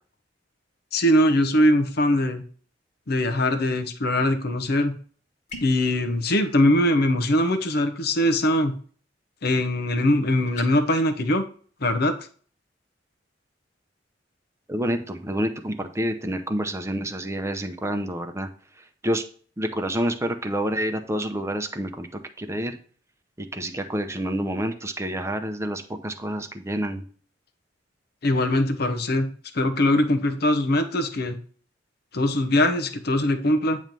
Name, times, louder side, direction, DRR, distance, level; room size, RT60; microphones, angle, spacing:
voice 1, 0.9-2.4 3.1-5.0 5.6-8.8 9.4-11.5 11.8-12.1 28.2-31.4 32.1-33.8, left 1 dB, 60° left, 8 dB, 0.8 m, -22 dB
sound 1, 5.5-5.9 10.5-10.7, left 2 dB, 40° left, 1.6 m, -38 dB
voice 2, 14.7-18.5 18.8-19.2 19.6-22.8 23.4-27.0, right 1 dB, 15° right, 7 dB, 0.7 m, -28 dB
9.0 x 3.1 x 5.3 m, 0.43 s
head